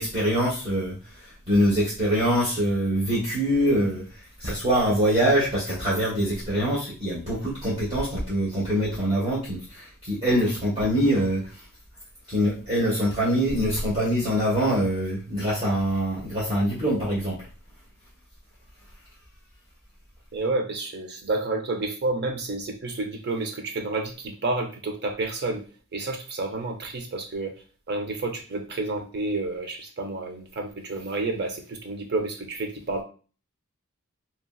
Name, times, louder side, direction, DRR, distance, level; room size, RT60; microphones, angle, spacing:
voice 1, 0.0-11.6 12.3-17.4, equal, 30° right, -9 dB, 0.9 m, -24 dB
voice 2, 20.3-25.6 25.9-27.5 27.9-33.0, right 2 dB, 45° right, 4 dB, 0.6 m, -30 dB
2.8 x 2.7 x 2.2 m, 0.37 s
head